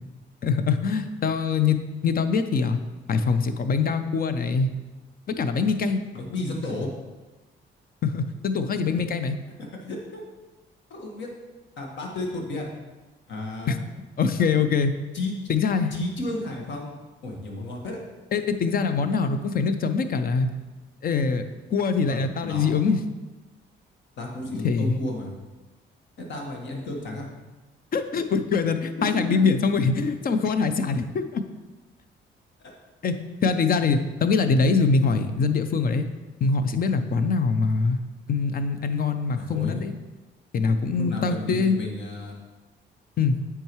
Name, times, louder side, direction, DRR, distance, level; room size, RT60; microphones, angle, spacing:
voice 1, 0.4-1.8 2.0-2.8 3.1-4.7 5.3-6.0 8.0-9.4 13.7-13.8 14.2-14.9 15.5-15.9 18.3-20.5 21.0-21.4 21.7-23.0 24.6-25.0 27.9-31.4 33.0-33.2 33.4-36.1 36.4-38.0 38.3-39.9 40.5-41.8 43.2-43.4, left 5 dB, 45° left, 9 dB, 0.6 m, -23 dB
voice 2, 6.1-6.9 8.7-8.8 9.6-10.2 10.9-11.3 11.8-12.7 13.3-13.8 15.1-15.3 15.9-16.9 17.2-18.0 22.1-22.8 24.2-25.3 26.2-27.3 29.1-29.4 32.6-32.7 39.4-39.8 41.0-42.3, left 2 dB, 65° left, 0 dB, 1.6 m, -33 dB
8.7 x 4.7 x 3.1 m, 1.2 s
cardioid pair, 90°, 20 cm